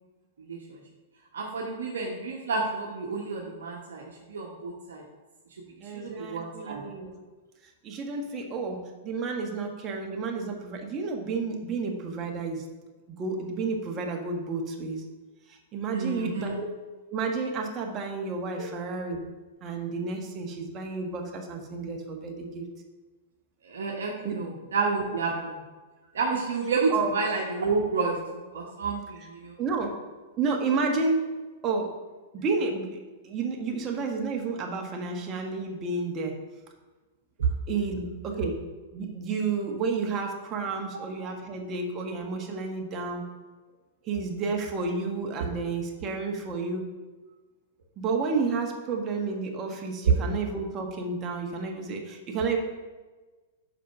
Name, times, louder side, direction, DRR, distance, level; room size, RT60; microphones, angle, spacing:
voice 1, 1.3-4.0 4.3-5.0 5.9-6.8 15.9-16.6 23.6-25.6 26.1-29.5 40.9-41.0 50.0-50.1, right 4 dB, 75° right, -1 dB, 1.1 m, -29 dB
voice 2, 5.8-7.2 7.8-12.6 13.1-15.0 15.5-16.7 17.1-19.2 19.6-22.6 24.2-24.4 26.9-27.1 29.6-30.0 30.4-31.3 31.6-31.9 32.3-33.0 33.2-36.4 37.7-38.6 38.9-43.2 44.1-46.9 48.0-52.6, right 4 dB, 30° right, 2 dB, 1.4 m, -31 dB
5.6 x 5.1 x 5.7 m, 1.3 s
hypercardioid pair, 110°, 0 cm